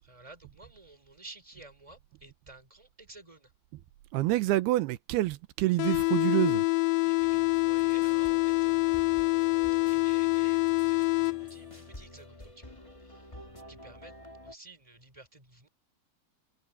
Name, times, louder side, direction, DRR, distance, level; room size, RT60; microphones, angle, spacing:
voice 1, 0.0-3.5 7.0-9.2 9.9-13.3 13.7-14.1 14.4-15.7, right 2 dB, 10° right, 5.1 m, -53 dB
voice 2, 4.1-6.6, right 17 dB, 85° right, 2.8 m, -27 dB
sound 1, 5.8-11.8, left 29 dB, 80° left, 2.2 m, -26 dB
sound 2, 7.2-14.5, left 1 dB, 20° left, 0.9 m, -49 dB
omnidirectional pair, 4.4 m